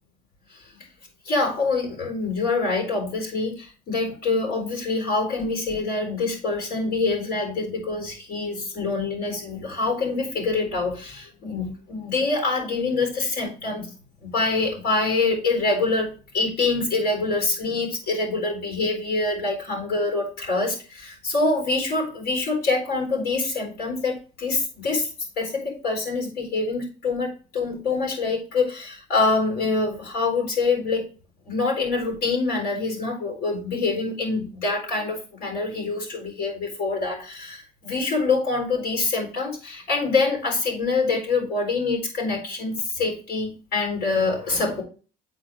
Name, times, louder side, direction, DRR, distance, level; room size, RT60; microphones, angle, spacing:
voice 1, 1.3-13.9 14.2-25.1 25.4-31.1 31.5-44.8, left 3 dB, 75° left, 1 dB, 4.2 m, -25 dB
8.1 x 4.4 x 4.8 m, 0.36 s
cardioid pair, 110°, 17 cm